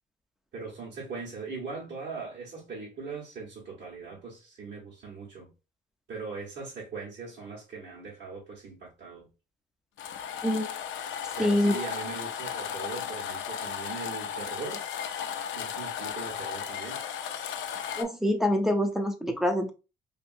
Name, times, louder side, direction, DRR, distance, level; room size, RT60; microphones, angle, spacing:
voice 1, 0.5-5.5 6.1-9.3 11.3-14.8 15.5-17.0, right 4 dB, 60° right, 1.3 m, -40 dB
sound 1, 10.0-18.0, left 8 dB, 70° left, 0.5 m, -35 dB
voice 2, 11.4-11.7 18.0-19.7, left 1 dB, ahead, 0.5 m, -25 dB
2.7 x 2.7 x 2.6 m
cardioid pair, 90°, 20 cm